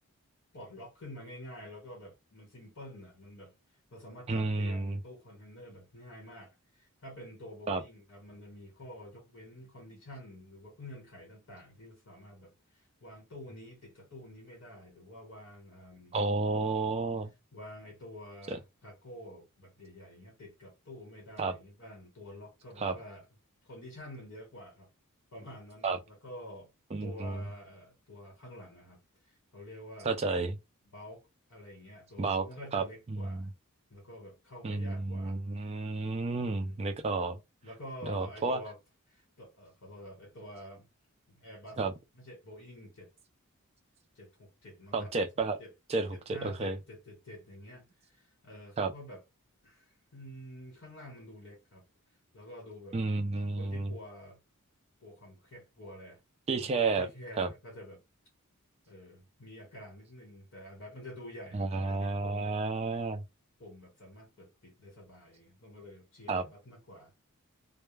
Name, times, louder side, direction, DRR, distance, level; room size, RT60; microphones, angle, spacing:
voice 1, 0.5-3.5 3.9-16.2 17.5-23.2 23.6-24.9 25.3-26.7 27.0-30.2 30.9-31.2 31.5-33.5 33.9-35.4 36.5-36.8 37.6-38.8 39.1-40.9 41.3-41.8 42.1-43.1 44.1-45.1 45.6-45.7 46.1-49.2 49.6-51.8 52.3-53.0 53.6-54.4 55.0-56.2 56.5-58.0 58.9-62.6 63.6-67.1, left 1 dB, 65° left, 1.1 m, -48 dB
voice 2, 4.3-5.0 7.7-7.8 16.1-17.3 18.5-18.6 21.4-21.6 22.8-22.9 25.8-26.0 26.9-27.4 30.0-30.6 32.2-32.4 32.7-33.5 34.6-37.4 38.0-38.6 41.8-41.9 44.9-45.6 45.9-46.8 48.8-48.9 52.9-53.9 56.5-57.1 57.4-57.5 61.5-63.2 66.3-66.4, right 3 dB, 30° right, 0.3 m, -31 dB
2.2 x 2.1 x 3.1 m
head